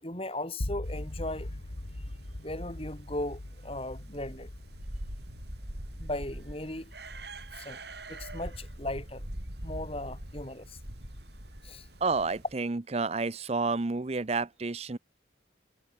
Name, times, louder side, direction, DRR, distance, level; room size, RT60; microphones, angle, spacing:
voice 1, 0.0-1.5 2.4-4.5 6.0-6.9 7.6-7.8 8.1-9.2 9.6-10.8 11.6-11.9, left 1 dB, 30° left, 5.7 m, -37 dB
sound 1, 0.6-10.6, left 1 dB, 70° left, 1.8 m, -42 dB
sound 2, 0.9-12.5, right 1 dB, 60° right, 6.1 m, -44 dB
voice 2, 12.0-15.0, right 3 dB, 35° right, 0.6 m, -30 dB
head